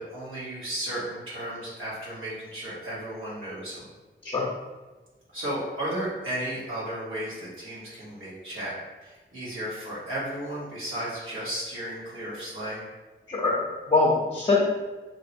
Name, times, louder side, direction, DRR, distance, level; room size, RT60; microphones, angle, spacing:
voice 1, 0.0-3.9 5.3-8.7 9.0-12.8, right 1 dB, 85° right, -8 dB, 1.3 m, -34 dB
voice 2, 13.3-14.6, left 3 dB, 25° left, -5 dB, 0.7 m, -23 dB
3.0 x 2.9 x 2.7 m, 1.2 s
cardioid pair, 60°, 20 cm